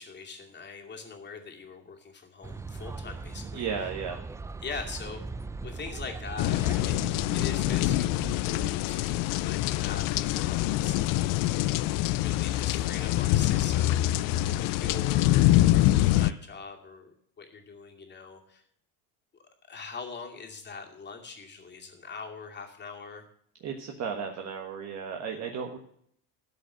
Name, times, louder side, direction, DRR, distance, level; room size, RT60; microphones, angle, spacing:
voice 1, 0.0-3.7 4.6-5.2 5.6-11.3 12.0-14.3 14.5-18.6 19.7-23.3, left 5 dB, 25° left, 1 dB, 2.5 m, -42 dB
sound 1, 2.4-8.7, right 3 dB, 10° right, 0.4 m, -39 dB
voice 2, 3.5-4.2 23.6-25.8, right 6 dB, 45° right, 2 dB, 1.4 m, -34 dB
sound 2, 6.4-16.3, left 15 dB, 60° left, 0.5 m, -25 dB
13.0 x 5.3 x 7.8 m, 0.67 s
supercardioid pair, 110°, 38 cm